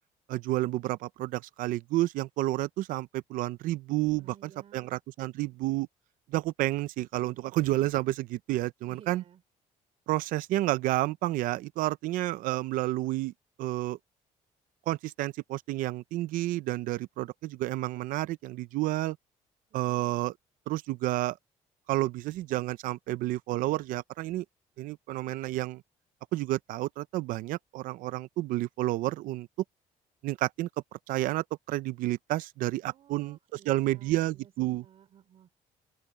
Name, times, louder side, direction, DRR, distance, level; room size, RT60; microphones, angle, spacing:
voice 1, 0.3-5.9 6.3-9.2 10.1-13.3 13.6-14.0 14.9-19.2 19.7-20.3 20.7-21.4 21.9-24.4 24.8-25.8 26.3-29.5 30.2-30.7 31.1-34.8, right 17 dB, 85° right, 0.6 m, -30 dB
voice 2, 4.2-5.0 8.9-9.4 32.8-34.5 34.8-35.7, right 9 dB, 45° right, 3.3 m, -56 dB
open air
cardioid pair, 170°, 14 cm